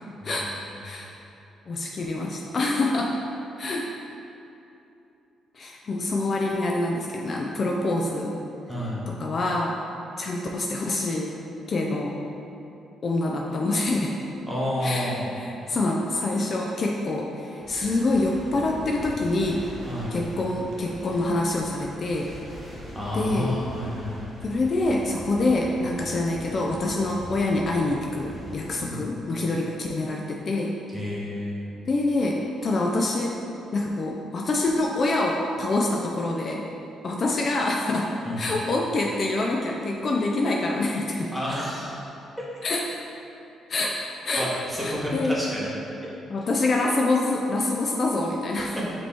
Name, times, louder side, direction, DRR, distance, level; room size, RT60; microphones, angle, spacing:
voice 1, 1.7-3.2 3.6-3.9 5.5-8.3 9.1-9.8 10.2-11.3 11.7-12.2 13.0-14.1 14.8-19.7 20.1-22.3 23.1-23.5 24.4-30.8 31.8-33.4 33.7-36.7 37.0-38.1 38.4-41.4 42.6-43.0 43.7-44.0 44.2-44.5 44.8-45.4 46.3-48.8, left 2 dB, 45° left, 0 dB, 0.3 m, -26 dB
voice 2, 8.7-9.1 14.5-15.3 19.8-20.1 22.9-24.1 28.8-29.0 30.9-31.6 38.2-38.4 41.3-42.0 44.4-45.7, left 1 dB, 5° right, -7 dB, 1.2 m, -30 dB
sound 1, 17.6-28.7, equal, 15° left, 1.1 m, -42 dB
4.9 x 3.0 x 3.4 m, 2.8 s
cardioid pair, 90°, 0 cm